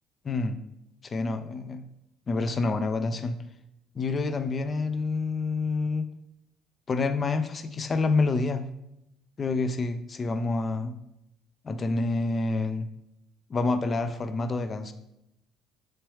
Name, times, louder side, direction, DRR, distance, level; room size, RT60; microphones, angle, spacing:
voice 1, 0.2-0.6 1.0-1.9 2.3-3.4 4.0-6.0 6.9-8.6 9.4-10.9 11.6-12.9 13.5-14.9, left 3 dB, 35° left, 10 dB, 0.3 m, -28 dB
3.1 x 3.0 x 3.1 m, 0.83 s
cardioid pair, 95°, 0 cm